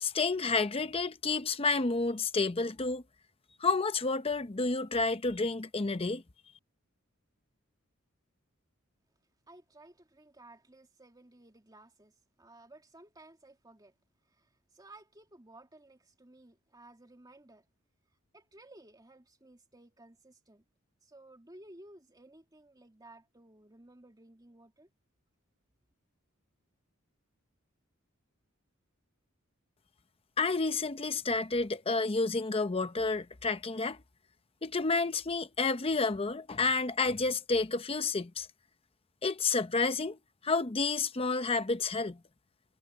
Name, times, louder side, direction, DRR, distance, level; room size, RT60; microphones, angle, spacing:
voice 1, 0.0-3.0 3.6-6.2 30.4-34.0 34.6-38.5 39.2-40.2 40.4-42.2, left 3 dB, 25° left, 0.7 m, -30 dB
voice 2, 9.5-13.9 14.3-17.6 18.3-20.6 21.0-24.9, right 2 dB, 20° right, 2.5 m, -56 dB
head